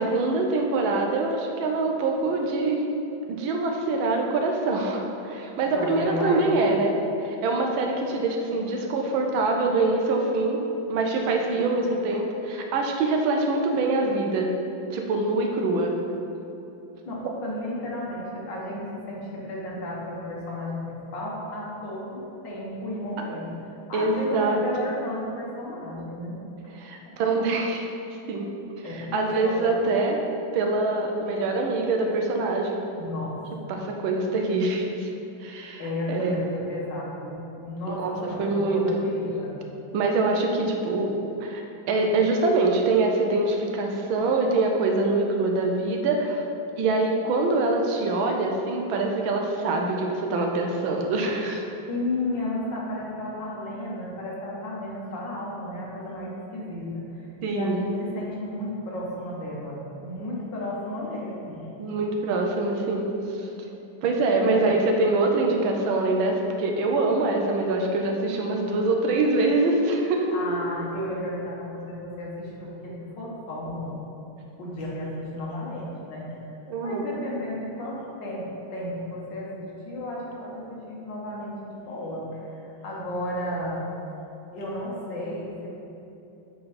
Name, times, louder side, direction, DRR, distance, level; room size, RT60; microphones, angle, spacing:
voice 1, 0.0-2.8 3.3-6.9 7.2-10.6 10.9-14.5 14.9-16.0 23.9-24.6 26.8-27.8 28.3-28.5 28.9-30.2 30.5-32.8 33.7-35.1 35.4-35.8 36.1-36.4 37.8-39.0 39.9-41.1 41.4-41.6 41.9-46.4 46.8-51.6 57.4-57.8 61.8-63.1 63.4-63.5 64.0-70.3 76.7-77.1, right 2 dB, 80° right, 2 dB, 1.5 m, -24 dB
voice 2, 5.7-6.5 17.1-17.2 17.4-23.5 23.9-26.4 27.1-27.2 28.8-29.8 33.0-33.4 33.6-33.7 35.8-39.6 51.9-61.7 64.5-64.7 70.3-73.9 74.6-76.4 76.8-83.8 84.5-85.7, left 1 dB, 65° left, -4 dB, 1.9 m, -33 dB
7.7 x 3.9 x 4.2 m, 2.9 s
omnidirectional pair, 2.2 m